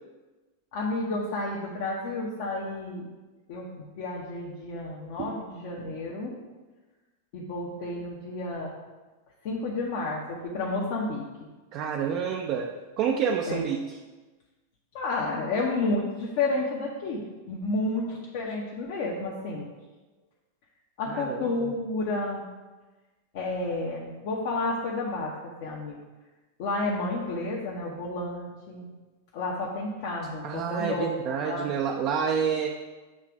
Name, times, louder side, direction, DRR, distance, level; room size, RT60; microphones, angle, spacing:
voice 1, 0.7-3.1 3.5-6.3 7.3-8.7 9.4-11.5 13.5-13.6 14.9-19.6 21.0-22.4 23.3-25.3 25.6-26.0 26.6-28.9 29.3-31.1 31.4-31.7, left 2 dB, 50° left, -4 dB, 0.9 m, -31 dB
voice 2, 11.7-12.7 13.0-14.0 21.1-21.7 30.4-32.7, right 7 dB, 40° right, 1 dB, 0.5 m, -28 dB
7.5 x 3.3 x 4.8 m, 1.2 s
figure-of-eight pair, 90°, 0 cm